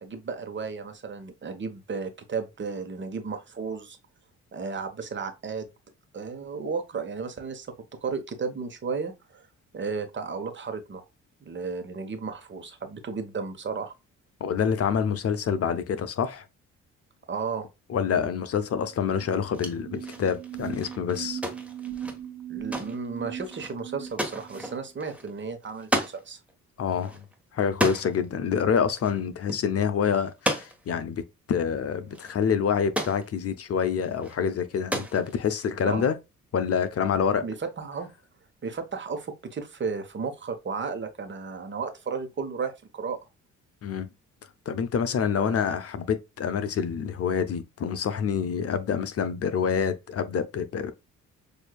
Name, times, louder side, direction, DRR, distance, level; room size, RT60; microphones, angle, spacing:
voice 1, 0.0-4.0 4.5-5.7 6.1-7.7 8.0-9.5 9.7-11.0 11.4-13.9 17.3-17.7 22.5-26.4 35.9-36.1 37.4-38.1 38.6-43.2 45.3-45.6, right 5 dB, 40° right, 1.1 m, -34 dB
voice 2, 14.4-16.4 17.9-21.4 26.8-27.2 27.5-31.2 31.5-36.2 36.5-37.4 43.8-44.1 44.7-50.9, left 7 dB, 50° left, 0.7 m, -27 dB
sound 1, 19.0-24.8, right 10 dB, 70° right, 1.4 m, -39 dB
sound 2, 19.4-26.2 26.5-26.6 26.9-28.2 28.9-29.2 29.5-29.6 30.3-31.0 31.8-31.9 32.1-33.3 34.0-34.4 34.7-35.6, equal, 5° right, 1.3 m, -33 dB
6.6 x 2.7 x 2.3 m
cardioid pair, 90°, 30 cm